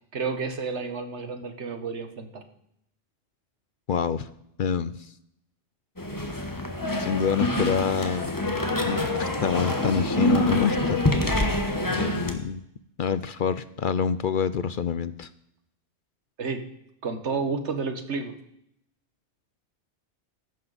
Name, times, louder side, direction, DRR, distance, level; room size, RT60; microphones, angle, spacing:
voice 1, 0.1-2.4 11.8-11.9 16.4-16.7 17.0-18.3, right 4 dB, 80° right, 8 dB, 1.7 m, -31 dB
voice 2, 3.9-4.3 4.6-5.1 7.0-8.3 8.8-11.0 11.9-12.6 13.0-15.3, left 7 dB, 55° left, 15 dB, 0.6 m, -27 dB
sound 1, 6.0-12.3, left 1 dB, 20° left, 1.3 m, -26 dB
14.5 x 11.5 x 4.1 m, 0.76 s
omnidirectional pair, 1.2 m